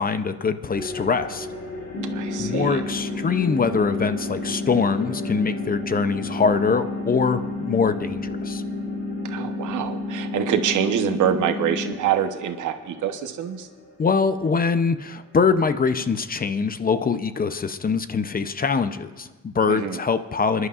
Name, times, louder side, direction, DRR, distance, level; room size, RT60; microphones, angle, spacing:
voice 1, 0.0-1.5 2.4-8.6 14.0-20.7, left 5 dB, 30° left, 11 dB, 0.6 m, -23 dB
sound 1, 0.7-17.2, left 2 dB, 60° left, 4.3 m, -39 dB
sound 2, 1.9-11.9, left 2 dB, 85° left, 1.8 m, -31 dB
voice 2, 2.1-2.8 9.2-13.7 19.7-20.0, right 9 dB, 80° right, 7 dB, 1.0 m, -25 dB
26.0 x 11.0 x 2.5 m, 1.3 s
cardioid pair, 90°, 30 cm